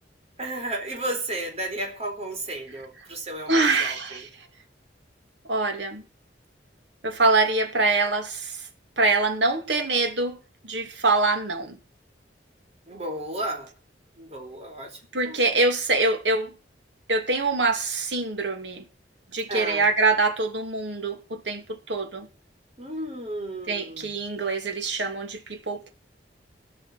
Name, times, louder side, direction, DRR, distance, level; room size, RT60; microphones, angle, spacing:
voice 1, 0.4-4.3 12.9-13.7 14.2-15.0 15.2-15.6 19.5-19.9 22.8-24.1, right 1 dB, 40° right, 4.2 m, -33 dB
voice 2, 3.5-4.3 5.5-6.0 7.0-8.6 9.0-10.4 10.7-11.8 15.1-16.5 17.1-18.8 19.3-22.3 23.7-25.9, right 3 dB, 85° right, 2.8 m, -24 dB
17.5 x 6.0 x 8.4 m
head